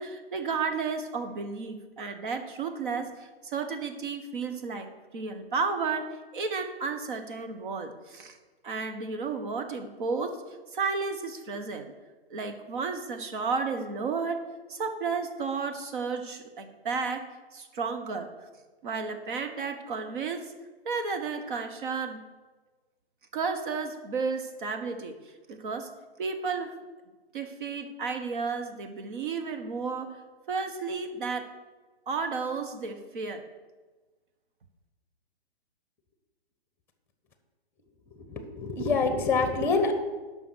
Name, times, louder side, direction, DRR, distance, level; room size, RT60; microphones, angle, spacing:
voice 1, 0.0-8.4 8.6-10.4 10.7-11.9 12.3-14.4 14.7-17.3 17.5-18.3 18.8-20.5 20.8-22.2 23.3-25.2 25.5-25.9 26.2-26.7 27.3-30.2 30.5-31.5 32.1-33.4, right 4 dB, 50° right, 8 dB, 1.3 m, -32 dB
voice 2, 38.2-39.9, left 4 dB, 5° left, 8 dB, 1.0 m, -26 dB
11.0 x 5.9 x 6.3 m, 1.3 s
figure-of-eight pair, 130°, 32 cm